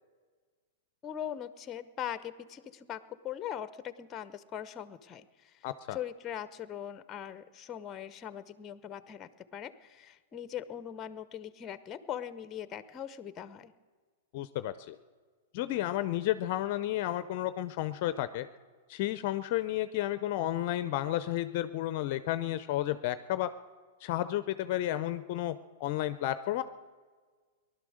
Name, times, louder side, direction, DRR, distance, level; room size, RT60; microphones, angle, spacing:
voice 1, 1.0-13.7, left 10 dB, 25° left, 14 dB, 0.9 m, -41 dB
voice 2, 5.6-6.0 14.3-15.0 15.5-18.5 18.9-23.5 24.0-26.6, left 13 dB, 50° left, 13 dB, 0.6 m, -32 dB
19.0 x 12.0 x 6.5 m, 1.5 s
hypercardioid pair, 115°, 0 cm